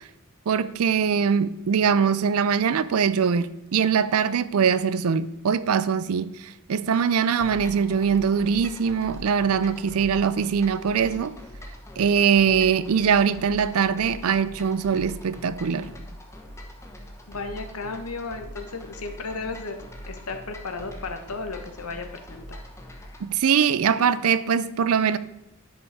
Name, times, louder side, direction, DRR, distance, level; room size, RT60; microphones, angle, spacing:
voice 1, 0.5-11.3 12.0-15.9 23.2-25.2, right 6 dB, 75° right, 0.4 m, -22 dB
sound 1, 7.4-23.3, equal, 15° left, 1.1 m, -42 dB
voice 2, 17.3-19.8 20.1-22.6, left 3 dB, 85° left, 1.1 m, -34 dB
10.0 x 5.5 x 4.7 m
head